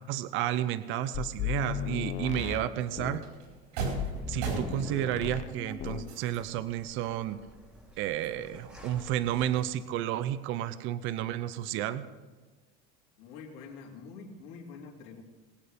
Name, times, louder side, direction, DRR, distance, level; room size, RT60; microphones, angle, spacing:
voice 1, 0.1-3.2 4.3-7.4 8.0-12.1, right 12 dB, 40° right, 13 dB, 0.7 m, -31 dB
sound 1, 1.1-3.3 4.0-5.5 5.8-6.1, left 10 dB, 25° left, 0.6 m, -35 dB
sound 2, 2.8-6.6 7.1-7.2 7.6-9.2 9.6-10.8, right 4 dB, 80° right, 4.7 m, -39 dB
sound 3, 3.9-9.5, equal, 5° right, 1.8 m, -51 dB
voice 2, 13.2-15.2, left 5 dB, 70° left, 0 dB, 3.5 m, -46 dB
21.5 x 9.0 x 5.2 m, 1.3 s
cardioid pair, 160°, 30 cm